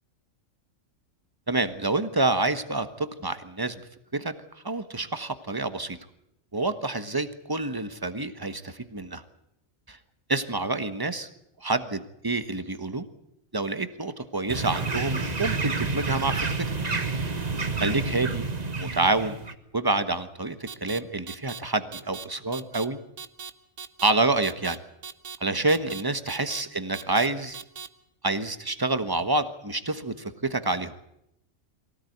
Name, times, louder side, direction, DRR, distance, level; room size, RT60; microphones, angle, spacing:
voice 1, 1.5-3.8 4.1-4.3 4.6-6.0 6.5-9.2 9.9-10.0 10.3-11.3 11.6-13.0 13.5-16.8 17.8-18.5 18.7-19.4 19.7-23.0 24.0-24.8 25.4-27.6 28.2-30.9, right 2 dB, 20° right, 10 dB, 1.3 m, -27 dB
sound 1, 14.5-19.5, right 4 dB, 35° right, 1.4 m, -29 dB
sound 2, 20.7-21.0 21.3-21.6 21.9-22.2 22.5-22.8 23.2-23.5 23.8-24.1 24.4-24.8 25.0-25.4 25.7-26.0 26.3-26.6 26.9-27.3 27.5-27.9, right 6 dB, 75° right, 1.6 m, -39 dB
24.0 x 17.0 x 9.4 m, 0.79 s
omnidirectional pair, 1.3 m